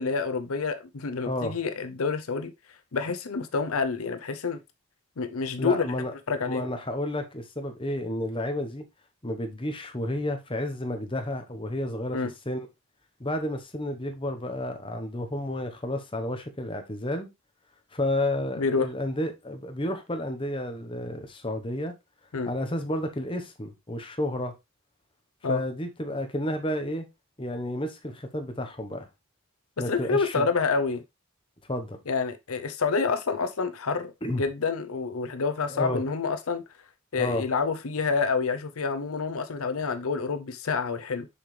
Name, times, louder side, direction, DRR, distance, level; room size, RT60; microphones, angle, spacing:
voice 1, 0.0-2.5 2.9-4.6 5.2-5.9 6.3-6.7 12.1-12.3 18.6-18.9 22.3-22.5 25.4-25.6 29.9-31.0 32.1-36.6 37.1-41.3, left 4 dB, 80° left, 0.7 m, -28 dB
voice 2, 1.2-1.6 5.6-6.1 6.5-8.8 9.2-12.7 13.2-17.3 17.9-21.9 22.5-24.5 25.5-27.1 27.4-29.1 29.8-30.5 31.7-32.0 34.2-34.4 35.7-36.0 37.2-37.5, left 1 dB, 25° left, 1.1 m, -31 dB
7.1 x 4.9 x 3.3 m
head